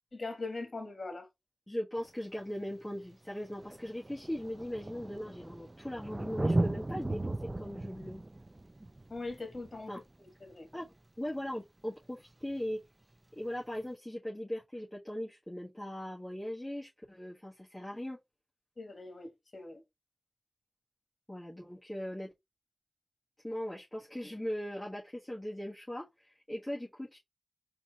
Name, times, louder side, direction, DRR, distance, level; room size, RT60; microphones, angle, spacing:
voice 1, 0.1-1.3 9.1-10.7 18.8-19.8, left 3 dB, 65° left, 1.5 m, -41 dB
voice 2, 1.7-8.2 9.9-10.0 10.7-10.9 11.2-12.8 13.3-18.2 21.3-22.3 23.4-27.2, left 1 dB, 15° left, 1.6 m, -39 dB
Thunder, 2.1-2.2 3.1-3.2 3.4-10.7 12.4-12.5, right 2 dB, 35° right, 0.5 m, -36 dB
4.2 x 2.7 x 4.7 m
wide cardioid pair, 50°, 0 cm